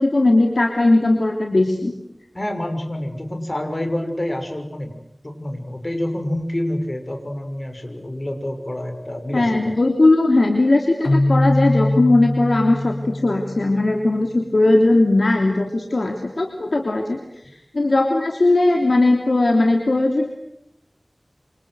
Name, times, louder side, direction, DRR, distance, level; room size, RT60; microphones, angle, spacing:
voice 1, 0.0-1.9 9.3-17.2 17.7-20.3, left 2 dB, 75° left, 3 dB, 3.2 m, -18 dB
voice 2, 2.3-4.9 5.2-9.7, left 1 dB, 40° left, 6 dB, 6.3 m, -27 dB
Keyboard (musical), 11.0-13.9, left 1 dB, 60° left, 1.7 m, -21 dB
27.5 x 27.0 x 8.0 m, 0.81 s
wide cardioid pair, 55°, 0 cm